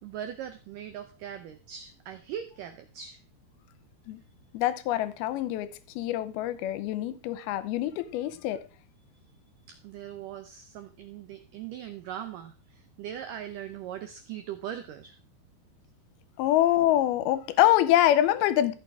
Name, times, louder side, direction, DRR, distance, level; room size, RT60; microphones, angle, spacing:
voice 1, 0.0-3.2 9.7-15.2, right 10 dB, 85° right, 1.9 m, -40 dB
voice 2, 4.5-8.6 16.4-18.7, left 13 dB, 80° left, 2.4 m, -25 dB
14.0 x 6.6 x 3.6 m
omnidirectional pair, 4.8 m